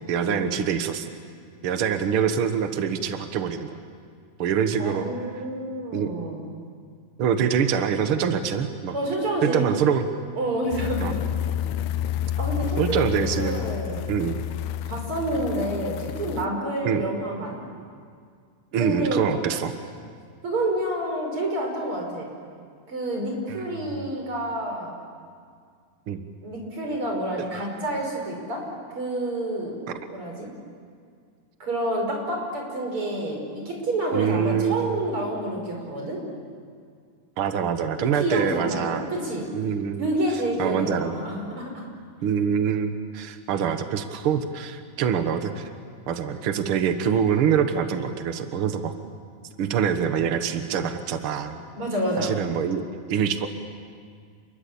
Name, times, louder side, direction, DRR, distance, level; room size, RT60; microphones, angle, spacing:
voice 1, 0.1-1.1 1.6-3.8 4.4-5.1 5.9-6.1 7.2-8.9 9.4-10.0 11.0-11.1 12.8-13.6 14.1-14.4 16.8-17.0 18.7-19.7 23.9-24.1 26.1-26.2 34.1-34.9 37.4-39.1 39.5-40.0 40.6-41.1 42.2-45.7 46.1-48.9 49.6-51.6 52.2-52.8 53.1-53.5, right 7 dB, 90° right, 8 dB, 1.2 m, -25 dB
voice 2, 4.8-6.4 8.9-9.7 10.4-11.2 12.4-13.0 13.4-14.1 14.9-17.6 18.8-19.2 20.4-22.3 22.9-25.0 26.4-28.6 28.9-29.8 30.1-30.5 31.6-36.2 38.2-39.5 40.0-41.8 51.7-52.4, right 1 dB, 35° right, 0 dB, 6.2 m, -28 dB
sound 1, 10.7-16.5, left 11 dB, 85° left, 2.8 m, -29 dB
28.0 x 22.0 x 8.7 m, 2.1 s
omnidirectional pair, 4.5 m